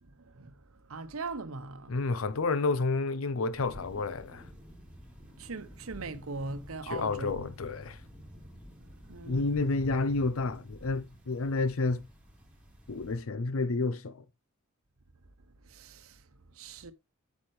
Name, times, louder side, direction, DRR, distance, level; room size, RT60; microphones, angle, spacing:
voice 1, 0.0-2.0 5.4-7.5 9.1-9.8 15.6-16.9, right 3 dB, 80° right, 0.9 m, -41 dB
voice 2, 1.9-4.5 6.8-8.0 9.3-12.0 12.9-14.2, left 3 dB, 75° left, 0.6 m, -30 dB
sound 1, 3.5-13.2, equal, 5° right, 3.2 m, -51 dB
8.7 x 7.4 x 3.1 m
head